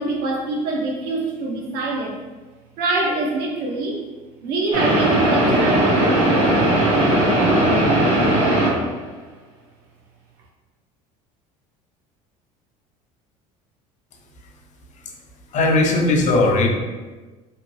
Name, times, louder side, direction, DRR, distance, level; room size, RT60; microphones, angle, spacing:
voice 1, 0.0-2.2 2.8-4.0 4.4-6.6, right 2 dB, 70° right, -2 dB, 0.8 m, -24 dB
sound 1, 4.7-9.0, right 1 dB, 90° right, 1.2 m, -18 dB
voice 2, 15.5-16.7, left 2 dB, 45° left, 2 dB, 0.5 m, -17 dB
2.9 x 2.1 x 3.0 m, 1.2 s
supercardioid pair, 90°, 17 cm